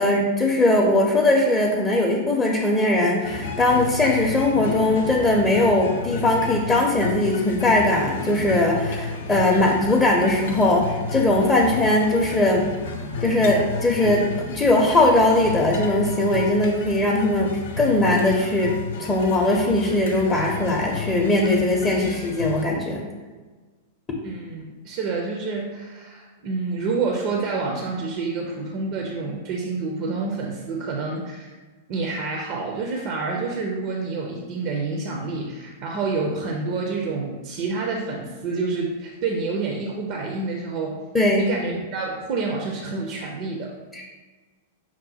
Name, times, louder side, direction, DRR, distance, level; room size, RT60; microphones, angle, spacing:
voice 1, 0.0-12.7 13.2-17.5 17.8-18.7 19.0-23.0 41.1-41.5 43.9-44.1, left 2 dB, 15° left, -2 dB, 0.6 m, -20 dB
sound 1, 3.2-22.6, left 4 dB, 60° left, 0.5 m, -32 dB
voice 2, 24.2-31.5 31.9-41.0 41.4-43.7, right 4 dB, 45° right, 0 dB, 0.5 m, -28 dB
5.9 x 2.1 x 4.1 m, 1.3 s
figure-of-eight pair, 95°, 0 cm